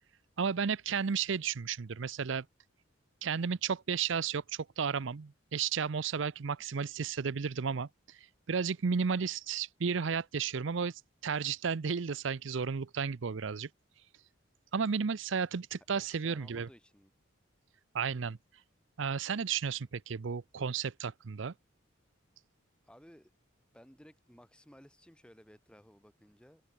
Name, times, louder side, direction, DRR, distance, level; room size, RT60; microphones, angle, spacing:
voice 1, 0.4-2.4 3.2-13.7 14.7-16.7 17.9-18.4 19.0-21.5, right 6 dB, 70° right, 0.6 m, -33 dB
voice 2, 15.9-17.1 22.8-23.3 23.7-26.6, equal, 5° left, 3.3 m, -57 dB
open air
head